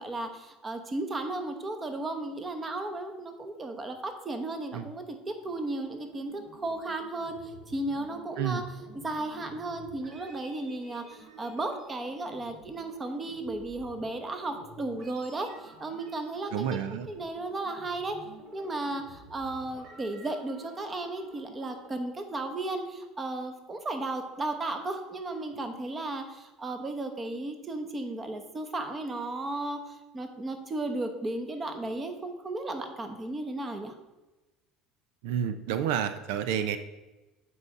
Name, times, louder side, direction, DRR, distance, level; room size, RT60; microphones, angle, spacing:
voice 1, 0.0-8.6 8.9-16.7 17.1-18.2 18.5-33.9, right 2 dB, 20° right, 7 dB, 0.9 m, -35 dB
sound 1, 5.4-21.9, right 2 dB, 50° right, 1.8 m, -52 dB
voice 2, 16.5-17.1 35.2-36.8, right 9 dB, 80° right, 10 dB, 0.5 m, -29 dB
8.0 x 4.8 x 5.4 m, 1.1 s
cardioid pair, 145°, 0 cm